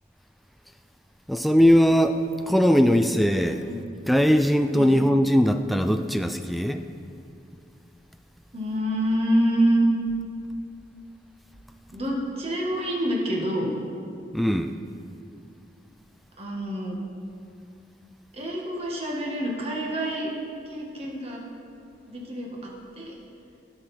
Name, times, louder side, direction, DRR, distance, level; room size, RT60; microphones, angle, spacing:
voice 1, 1.3-3.7 4.1-6.8 14.3-14.7, equal, ahead, 8 dB, 0.3 m, -20 dB
voice 2, 8.5-9.9 11.9-13.7 16.4-17.0 18.3-20.3 20.6-21.4 22.1-23.1, right 1 dB, 35° right, -2 dB, 1.8 m, -27 dB
16.0 x 6.1 x 4.4 m, 2.5 s
head